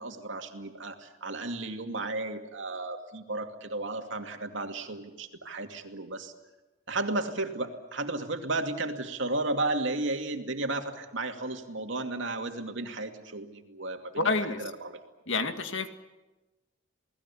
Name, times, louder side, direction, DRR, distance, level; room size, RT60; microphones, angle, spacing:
voice 1, 0.0-6.3 6.9-15.0, right 2 dB, 70° right, 5 dB, 2.5 m, -34 dB
voice 2, 14.2-14.6 15.3-15.9, left 3 dB, 70° left, 7 dB, 2.0 m, -28 dB
29.0 x 19.5 x 8.5 m, 1.1 s
head